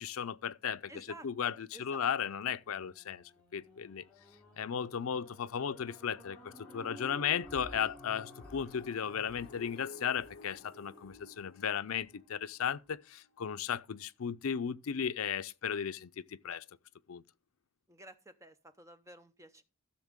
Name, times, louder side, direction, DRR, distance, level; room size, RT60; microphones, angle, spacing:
voice 1, 0.0-4.1 4.6-16.6 17.1-17.2, left 8 dB, 75° left, 0.5 m, -36 dB
voice 2, 0.9-2.1 17.9-19.6, right 1 dB, 15° right, 0.7 m, -53 dB
sound 1, 2.4-12.7 13.3-13.4, left 2 dB, 5° left, 6.3 m, -56 dB
sound 2, 6.6-11.4, equal, 40° right, 3.8 m, -54 dB
sound 3, 7.9-13.7, left 4 dB, 40° left, 1.9 m, -55 dB
14.5 x 6.4 x 3.5 m
head